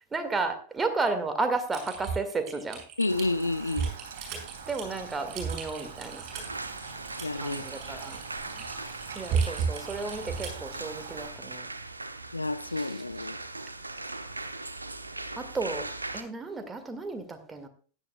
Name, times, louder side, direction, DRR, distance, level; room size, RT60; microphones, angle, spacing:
voice 1, 0.1-2.8 4.7-6.2 7.4-8.2 9.2-11.7 15.4-15.8 16.1-17.7, right 3 dB, 15° right, 7 dB, 1.9 m, -32 dB
Typing, 1.7-10.6, right 6 dB, 35° right, 6.1 m, -34 dB
voice 2, 3.0-3.9 7.2-7.6 12.3-13.4, left 2 dB, 80° left, 13 dB, 0.5 m, -29 dB
Rain, 3.1-11.3, right 6 dB, 60° right, 2.1 m, -44 dB
sound 1, 6.3-16.2, right 2 dB, 80° right, 0.8 m, -40 dB
16.0 x 11.0 x 2.3 m, 0.41 s
figure-of-eight pair, 90°, 0 cm